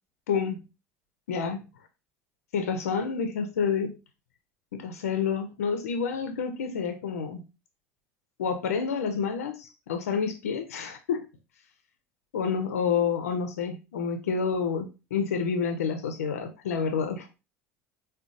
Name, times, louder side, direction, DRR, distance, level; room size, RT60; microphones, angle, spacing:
voice 1, 0.3-0.6 1.3-1.6 2.5-3.9 4.7-7.4 8.4-11.3 12.3-17.3, left 6 dB, 85° left, 7 dB, 0.4 m, -29 dB
3.8 x 2.1 x 2.4 m, 0.29 s
hypercardioid pair, 80°, 8 cm